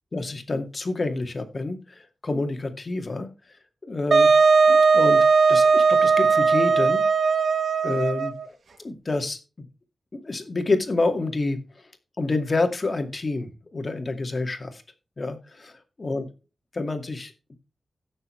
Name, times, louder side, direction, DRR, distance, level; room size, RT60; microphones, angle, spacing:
voice 1, 0.1-3.3 3.9-4.3 4.7-7.0 7.8-9.7 10.1-11.6 12.2-14.8 15.2-16.3 16.7-17.3, left 3 dB, 40° left, 7 dB, 2.2 m, -28 dB
Wind instrument woodwind instrument, 4.1-8.5, right 5 dB, 65° right, 0.8 m, -18 dB
17.0 x 6.8 x 3.3 m, 0.30 s
wide cardioid pair, 85°, 0 cm